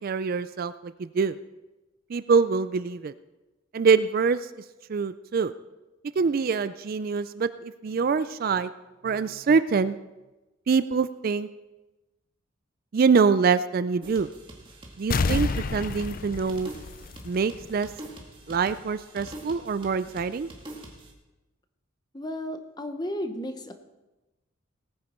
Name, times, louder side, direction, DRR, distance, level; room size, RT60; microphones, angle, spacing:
voice 1, 0.0-1.4 2.1-3.1 3.7-4.6 4.9-5.5 6.2-8.7 9.0-10.0 10.7-11.5 12.9-14.3 15.0-16.7 17.3-17.9 18.5-20.5, right 5 dB, 45° right, 14 dB, 0.3 m, -24 dB
sound 1, 14.0-21.1, right 1 dB, 25° right, 1.9 m, -45 dB
sound 2, 15.1-17.7 18.1-18.2, left 4 dB, 45° left, 0.5 m, -29 dB
voice 2, 22.1-23.7, left 1 dB, 20° left, 7 dB, 0.9 m, -33 dB
18.5 x 9.6 x 4.4 m, 1.1 s
head